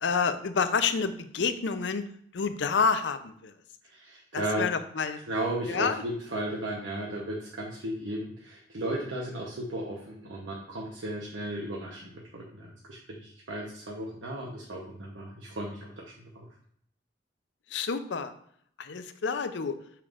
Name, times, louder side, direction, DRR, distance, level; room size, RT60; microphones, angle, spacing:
voice 1, 0.0-2.0 2.3-3.5 4.3-5.2 5.7-6.0 17.7-18.3 18.8-19.8, left 5 dB, 70° left, 10 dB, 0.5 m, -28 dB
voice 2, 3.8-4.6 5.3-16.5, right 1 dB, 80° right, -2 dB, 0.9 m, -35 dB
6.7 x 5.6 x 2.5 m, 0.65 s
head